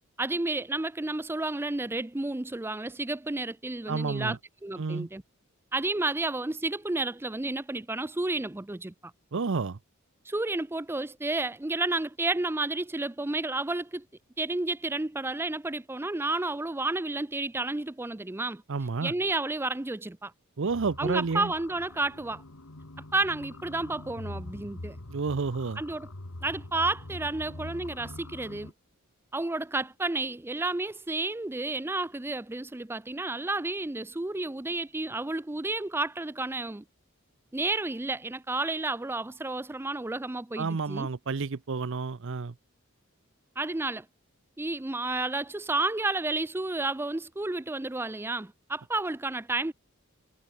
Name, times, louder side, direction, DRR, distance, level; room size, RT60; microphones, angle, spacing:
voice 1, 0.2-4.4 4.6-5.2 5.7-9.1 10.3-14.0 14.4-18.6 19.0-20.3 21.0-22.4 23.1-25.0 25.8-26.1 26.4-28.7 29.3-36.8 37.5-41.1 43.6-44.1 44.6-49.7, right 2 dB, 10° right, 0.5 m, -31 dB
voice 2, 3.9-4.4 4.8-5.1 9.3-9.8 18.7-19.1 20.6-21.5 25.1-25.8 40.6-42.5, right 4 dB, 60° right, 0.6 m, -30 dB
sound 1, 20.7-28.7, left 1 dB, 90° left, 2.0 m, -44 dB
head